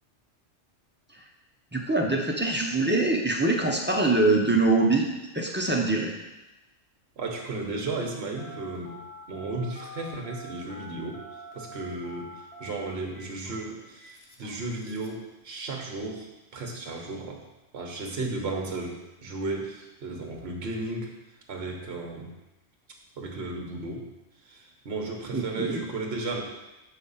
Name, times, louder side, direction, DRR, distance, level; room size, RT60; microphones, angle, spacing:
voice 1, 1.7-5.1 5.3-6.1 25.3-25.8, right 2 dB, 10° right, 0 dB, 0.6 m, -24 dB
voice 2, 7.2-8.9 9.3-11.2 11.5-12.3 12.6-16.3 16.5-17.4 17.7-21.1 21.5-22.3 23.2-24.1 24.4-26.4, right 2 dB, 55° right, 2 dB, 1.3 m, -34 dB
Telephone, 8.4-15.2, equal, 60° left, 1.3 m, -46 dB
7.3 x 3.7 x 5.6 m, 1.0 s
omnidirectional pair, 1.3 m